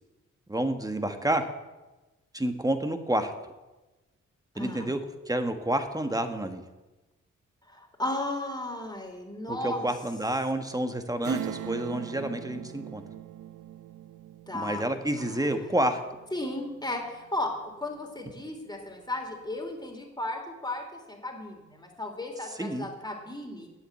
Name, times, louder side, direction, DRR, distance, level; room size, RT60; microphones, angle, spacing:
voice 1, 0.5-1.5 2.3-3.3 4.5-5.0 5.3-6.6 9.5-13.0 14.5-16.0 22.6-22.9, right 1 dB, 10° right, 7 dB, 1.5 m, -29 dB
voice 2, 4.5-4.9 7.7-9.9 14.5-14.8 15.3-15.4 16.3-23.7, left 1 dB, 15° left, 1 dB, 3.4 m, -35 dB
Acoustic guitar / Strum, 11.2-17.4 17.8-17.9, right 11 dB, 85° right, 0.6 m, -40 dB
9.2 x 7.8 x 8.5 m, 1.1 s
supercardioid pair, 45°, 30 cm